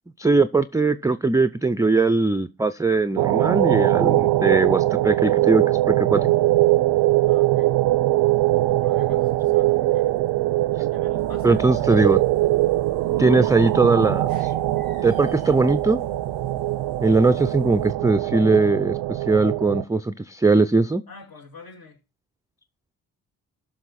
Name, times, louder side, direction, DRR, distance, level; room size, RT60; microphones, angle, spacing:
voice 1, 0.2-6.3 11.4-12.2 13.2-14.5 15.0-16.0 17.0-21.0, right 3 dB, 10° right, 0.4 m, -20 dB
sound 1, 3.2-19.8, right 16 dB, 90° right, 0.5 m, -22 dB
voice 2, 7.3-7.7 8.7-10.1 10.9-11.9 21.1-22.0, left 4 dB, 65° left, 2.3 m, -46 dB
sound 2, 8.1-17.9, equal, 85° left, 3.2 m, -44 dB
13.0 x 5.8 x 4.1 m
supercardioid pair, 60°, 39 cm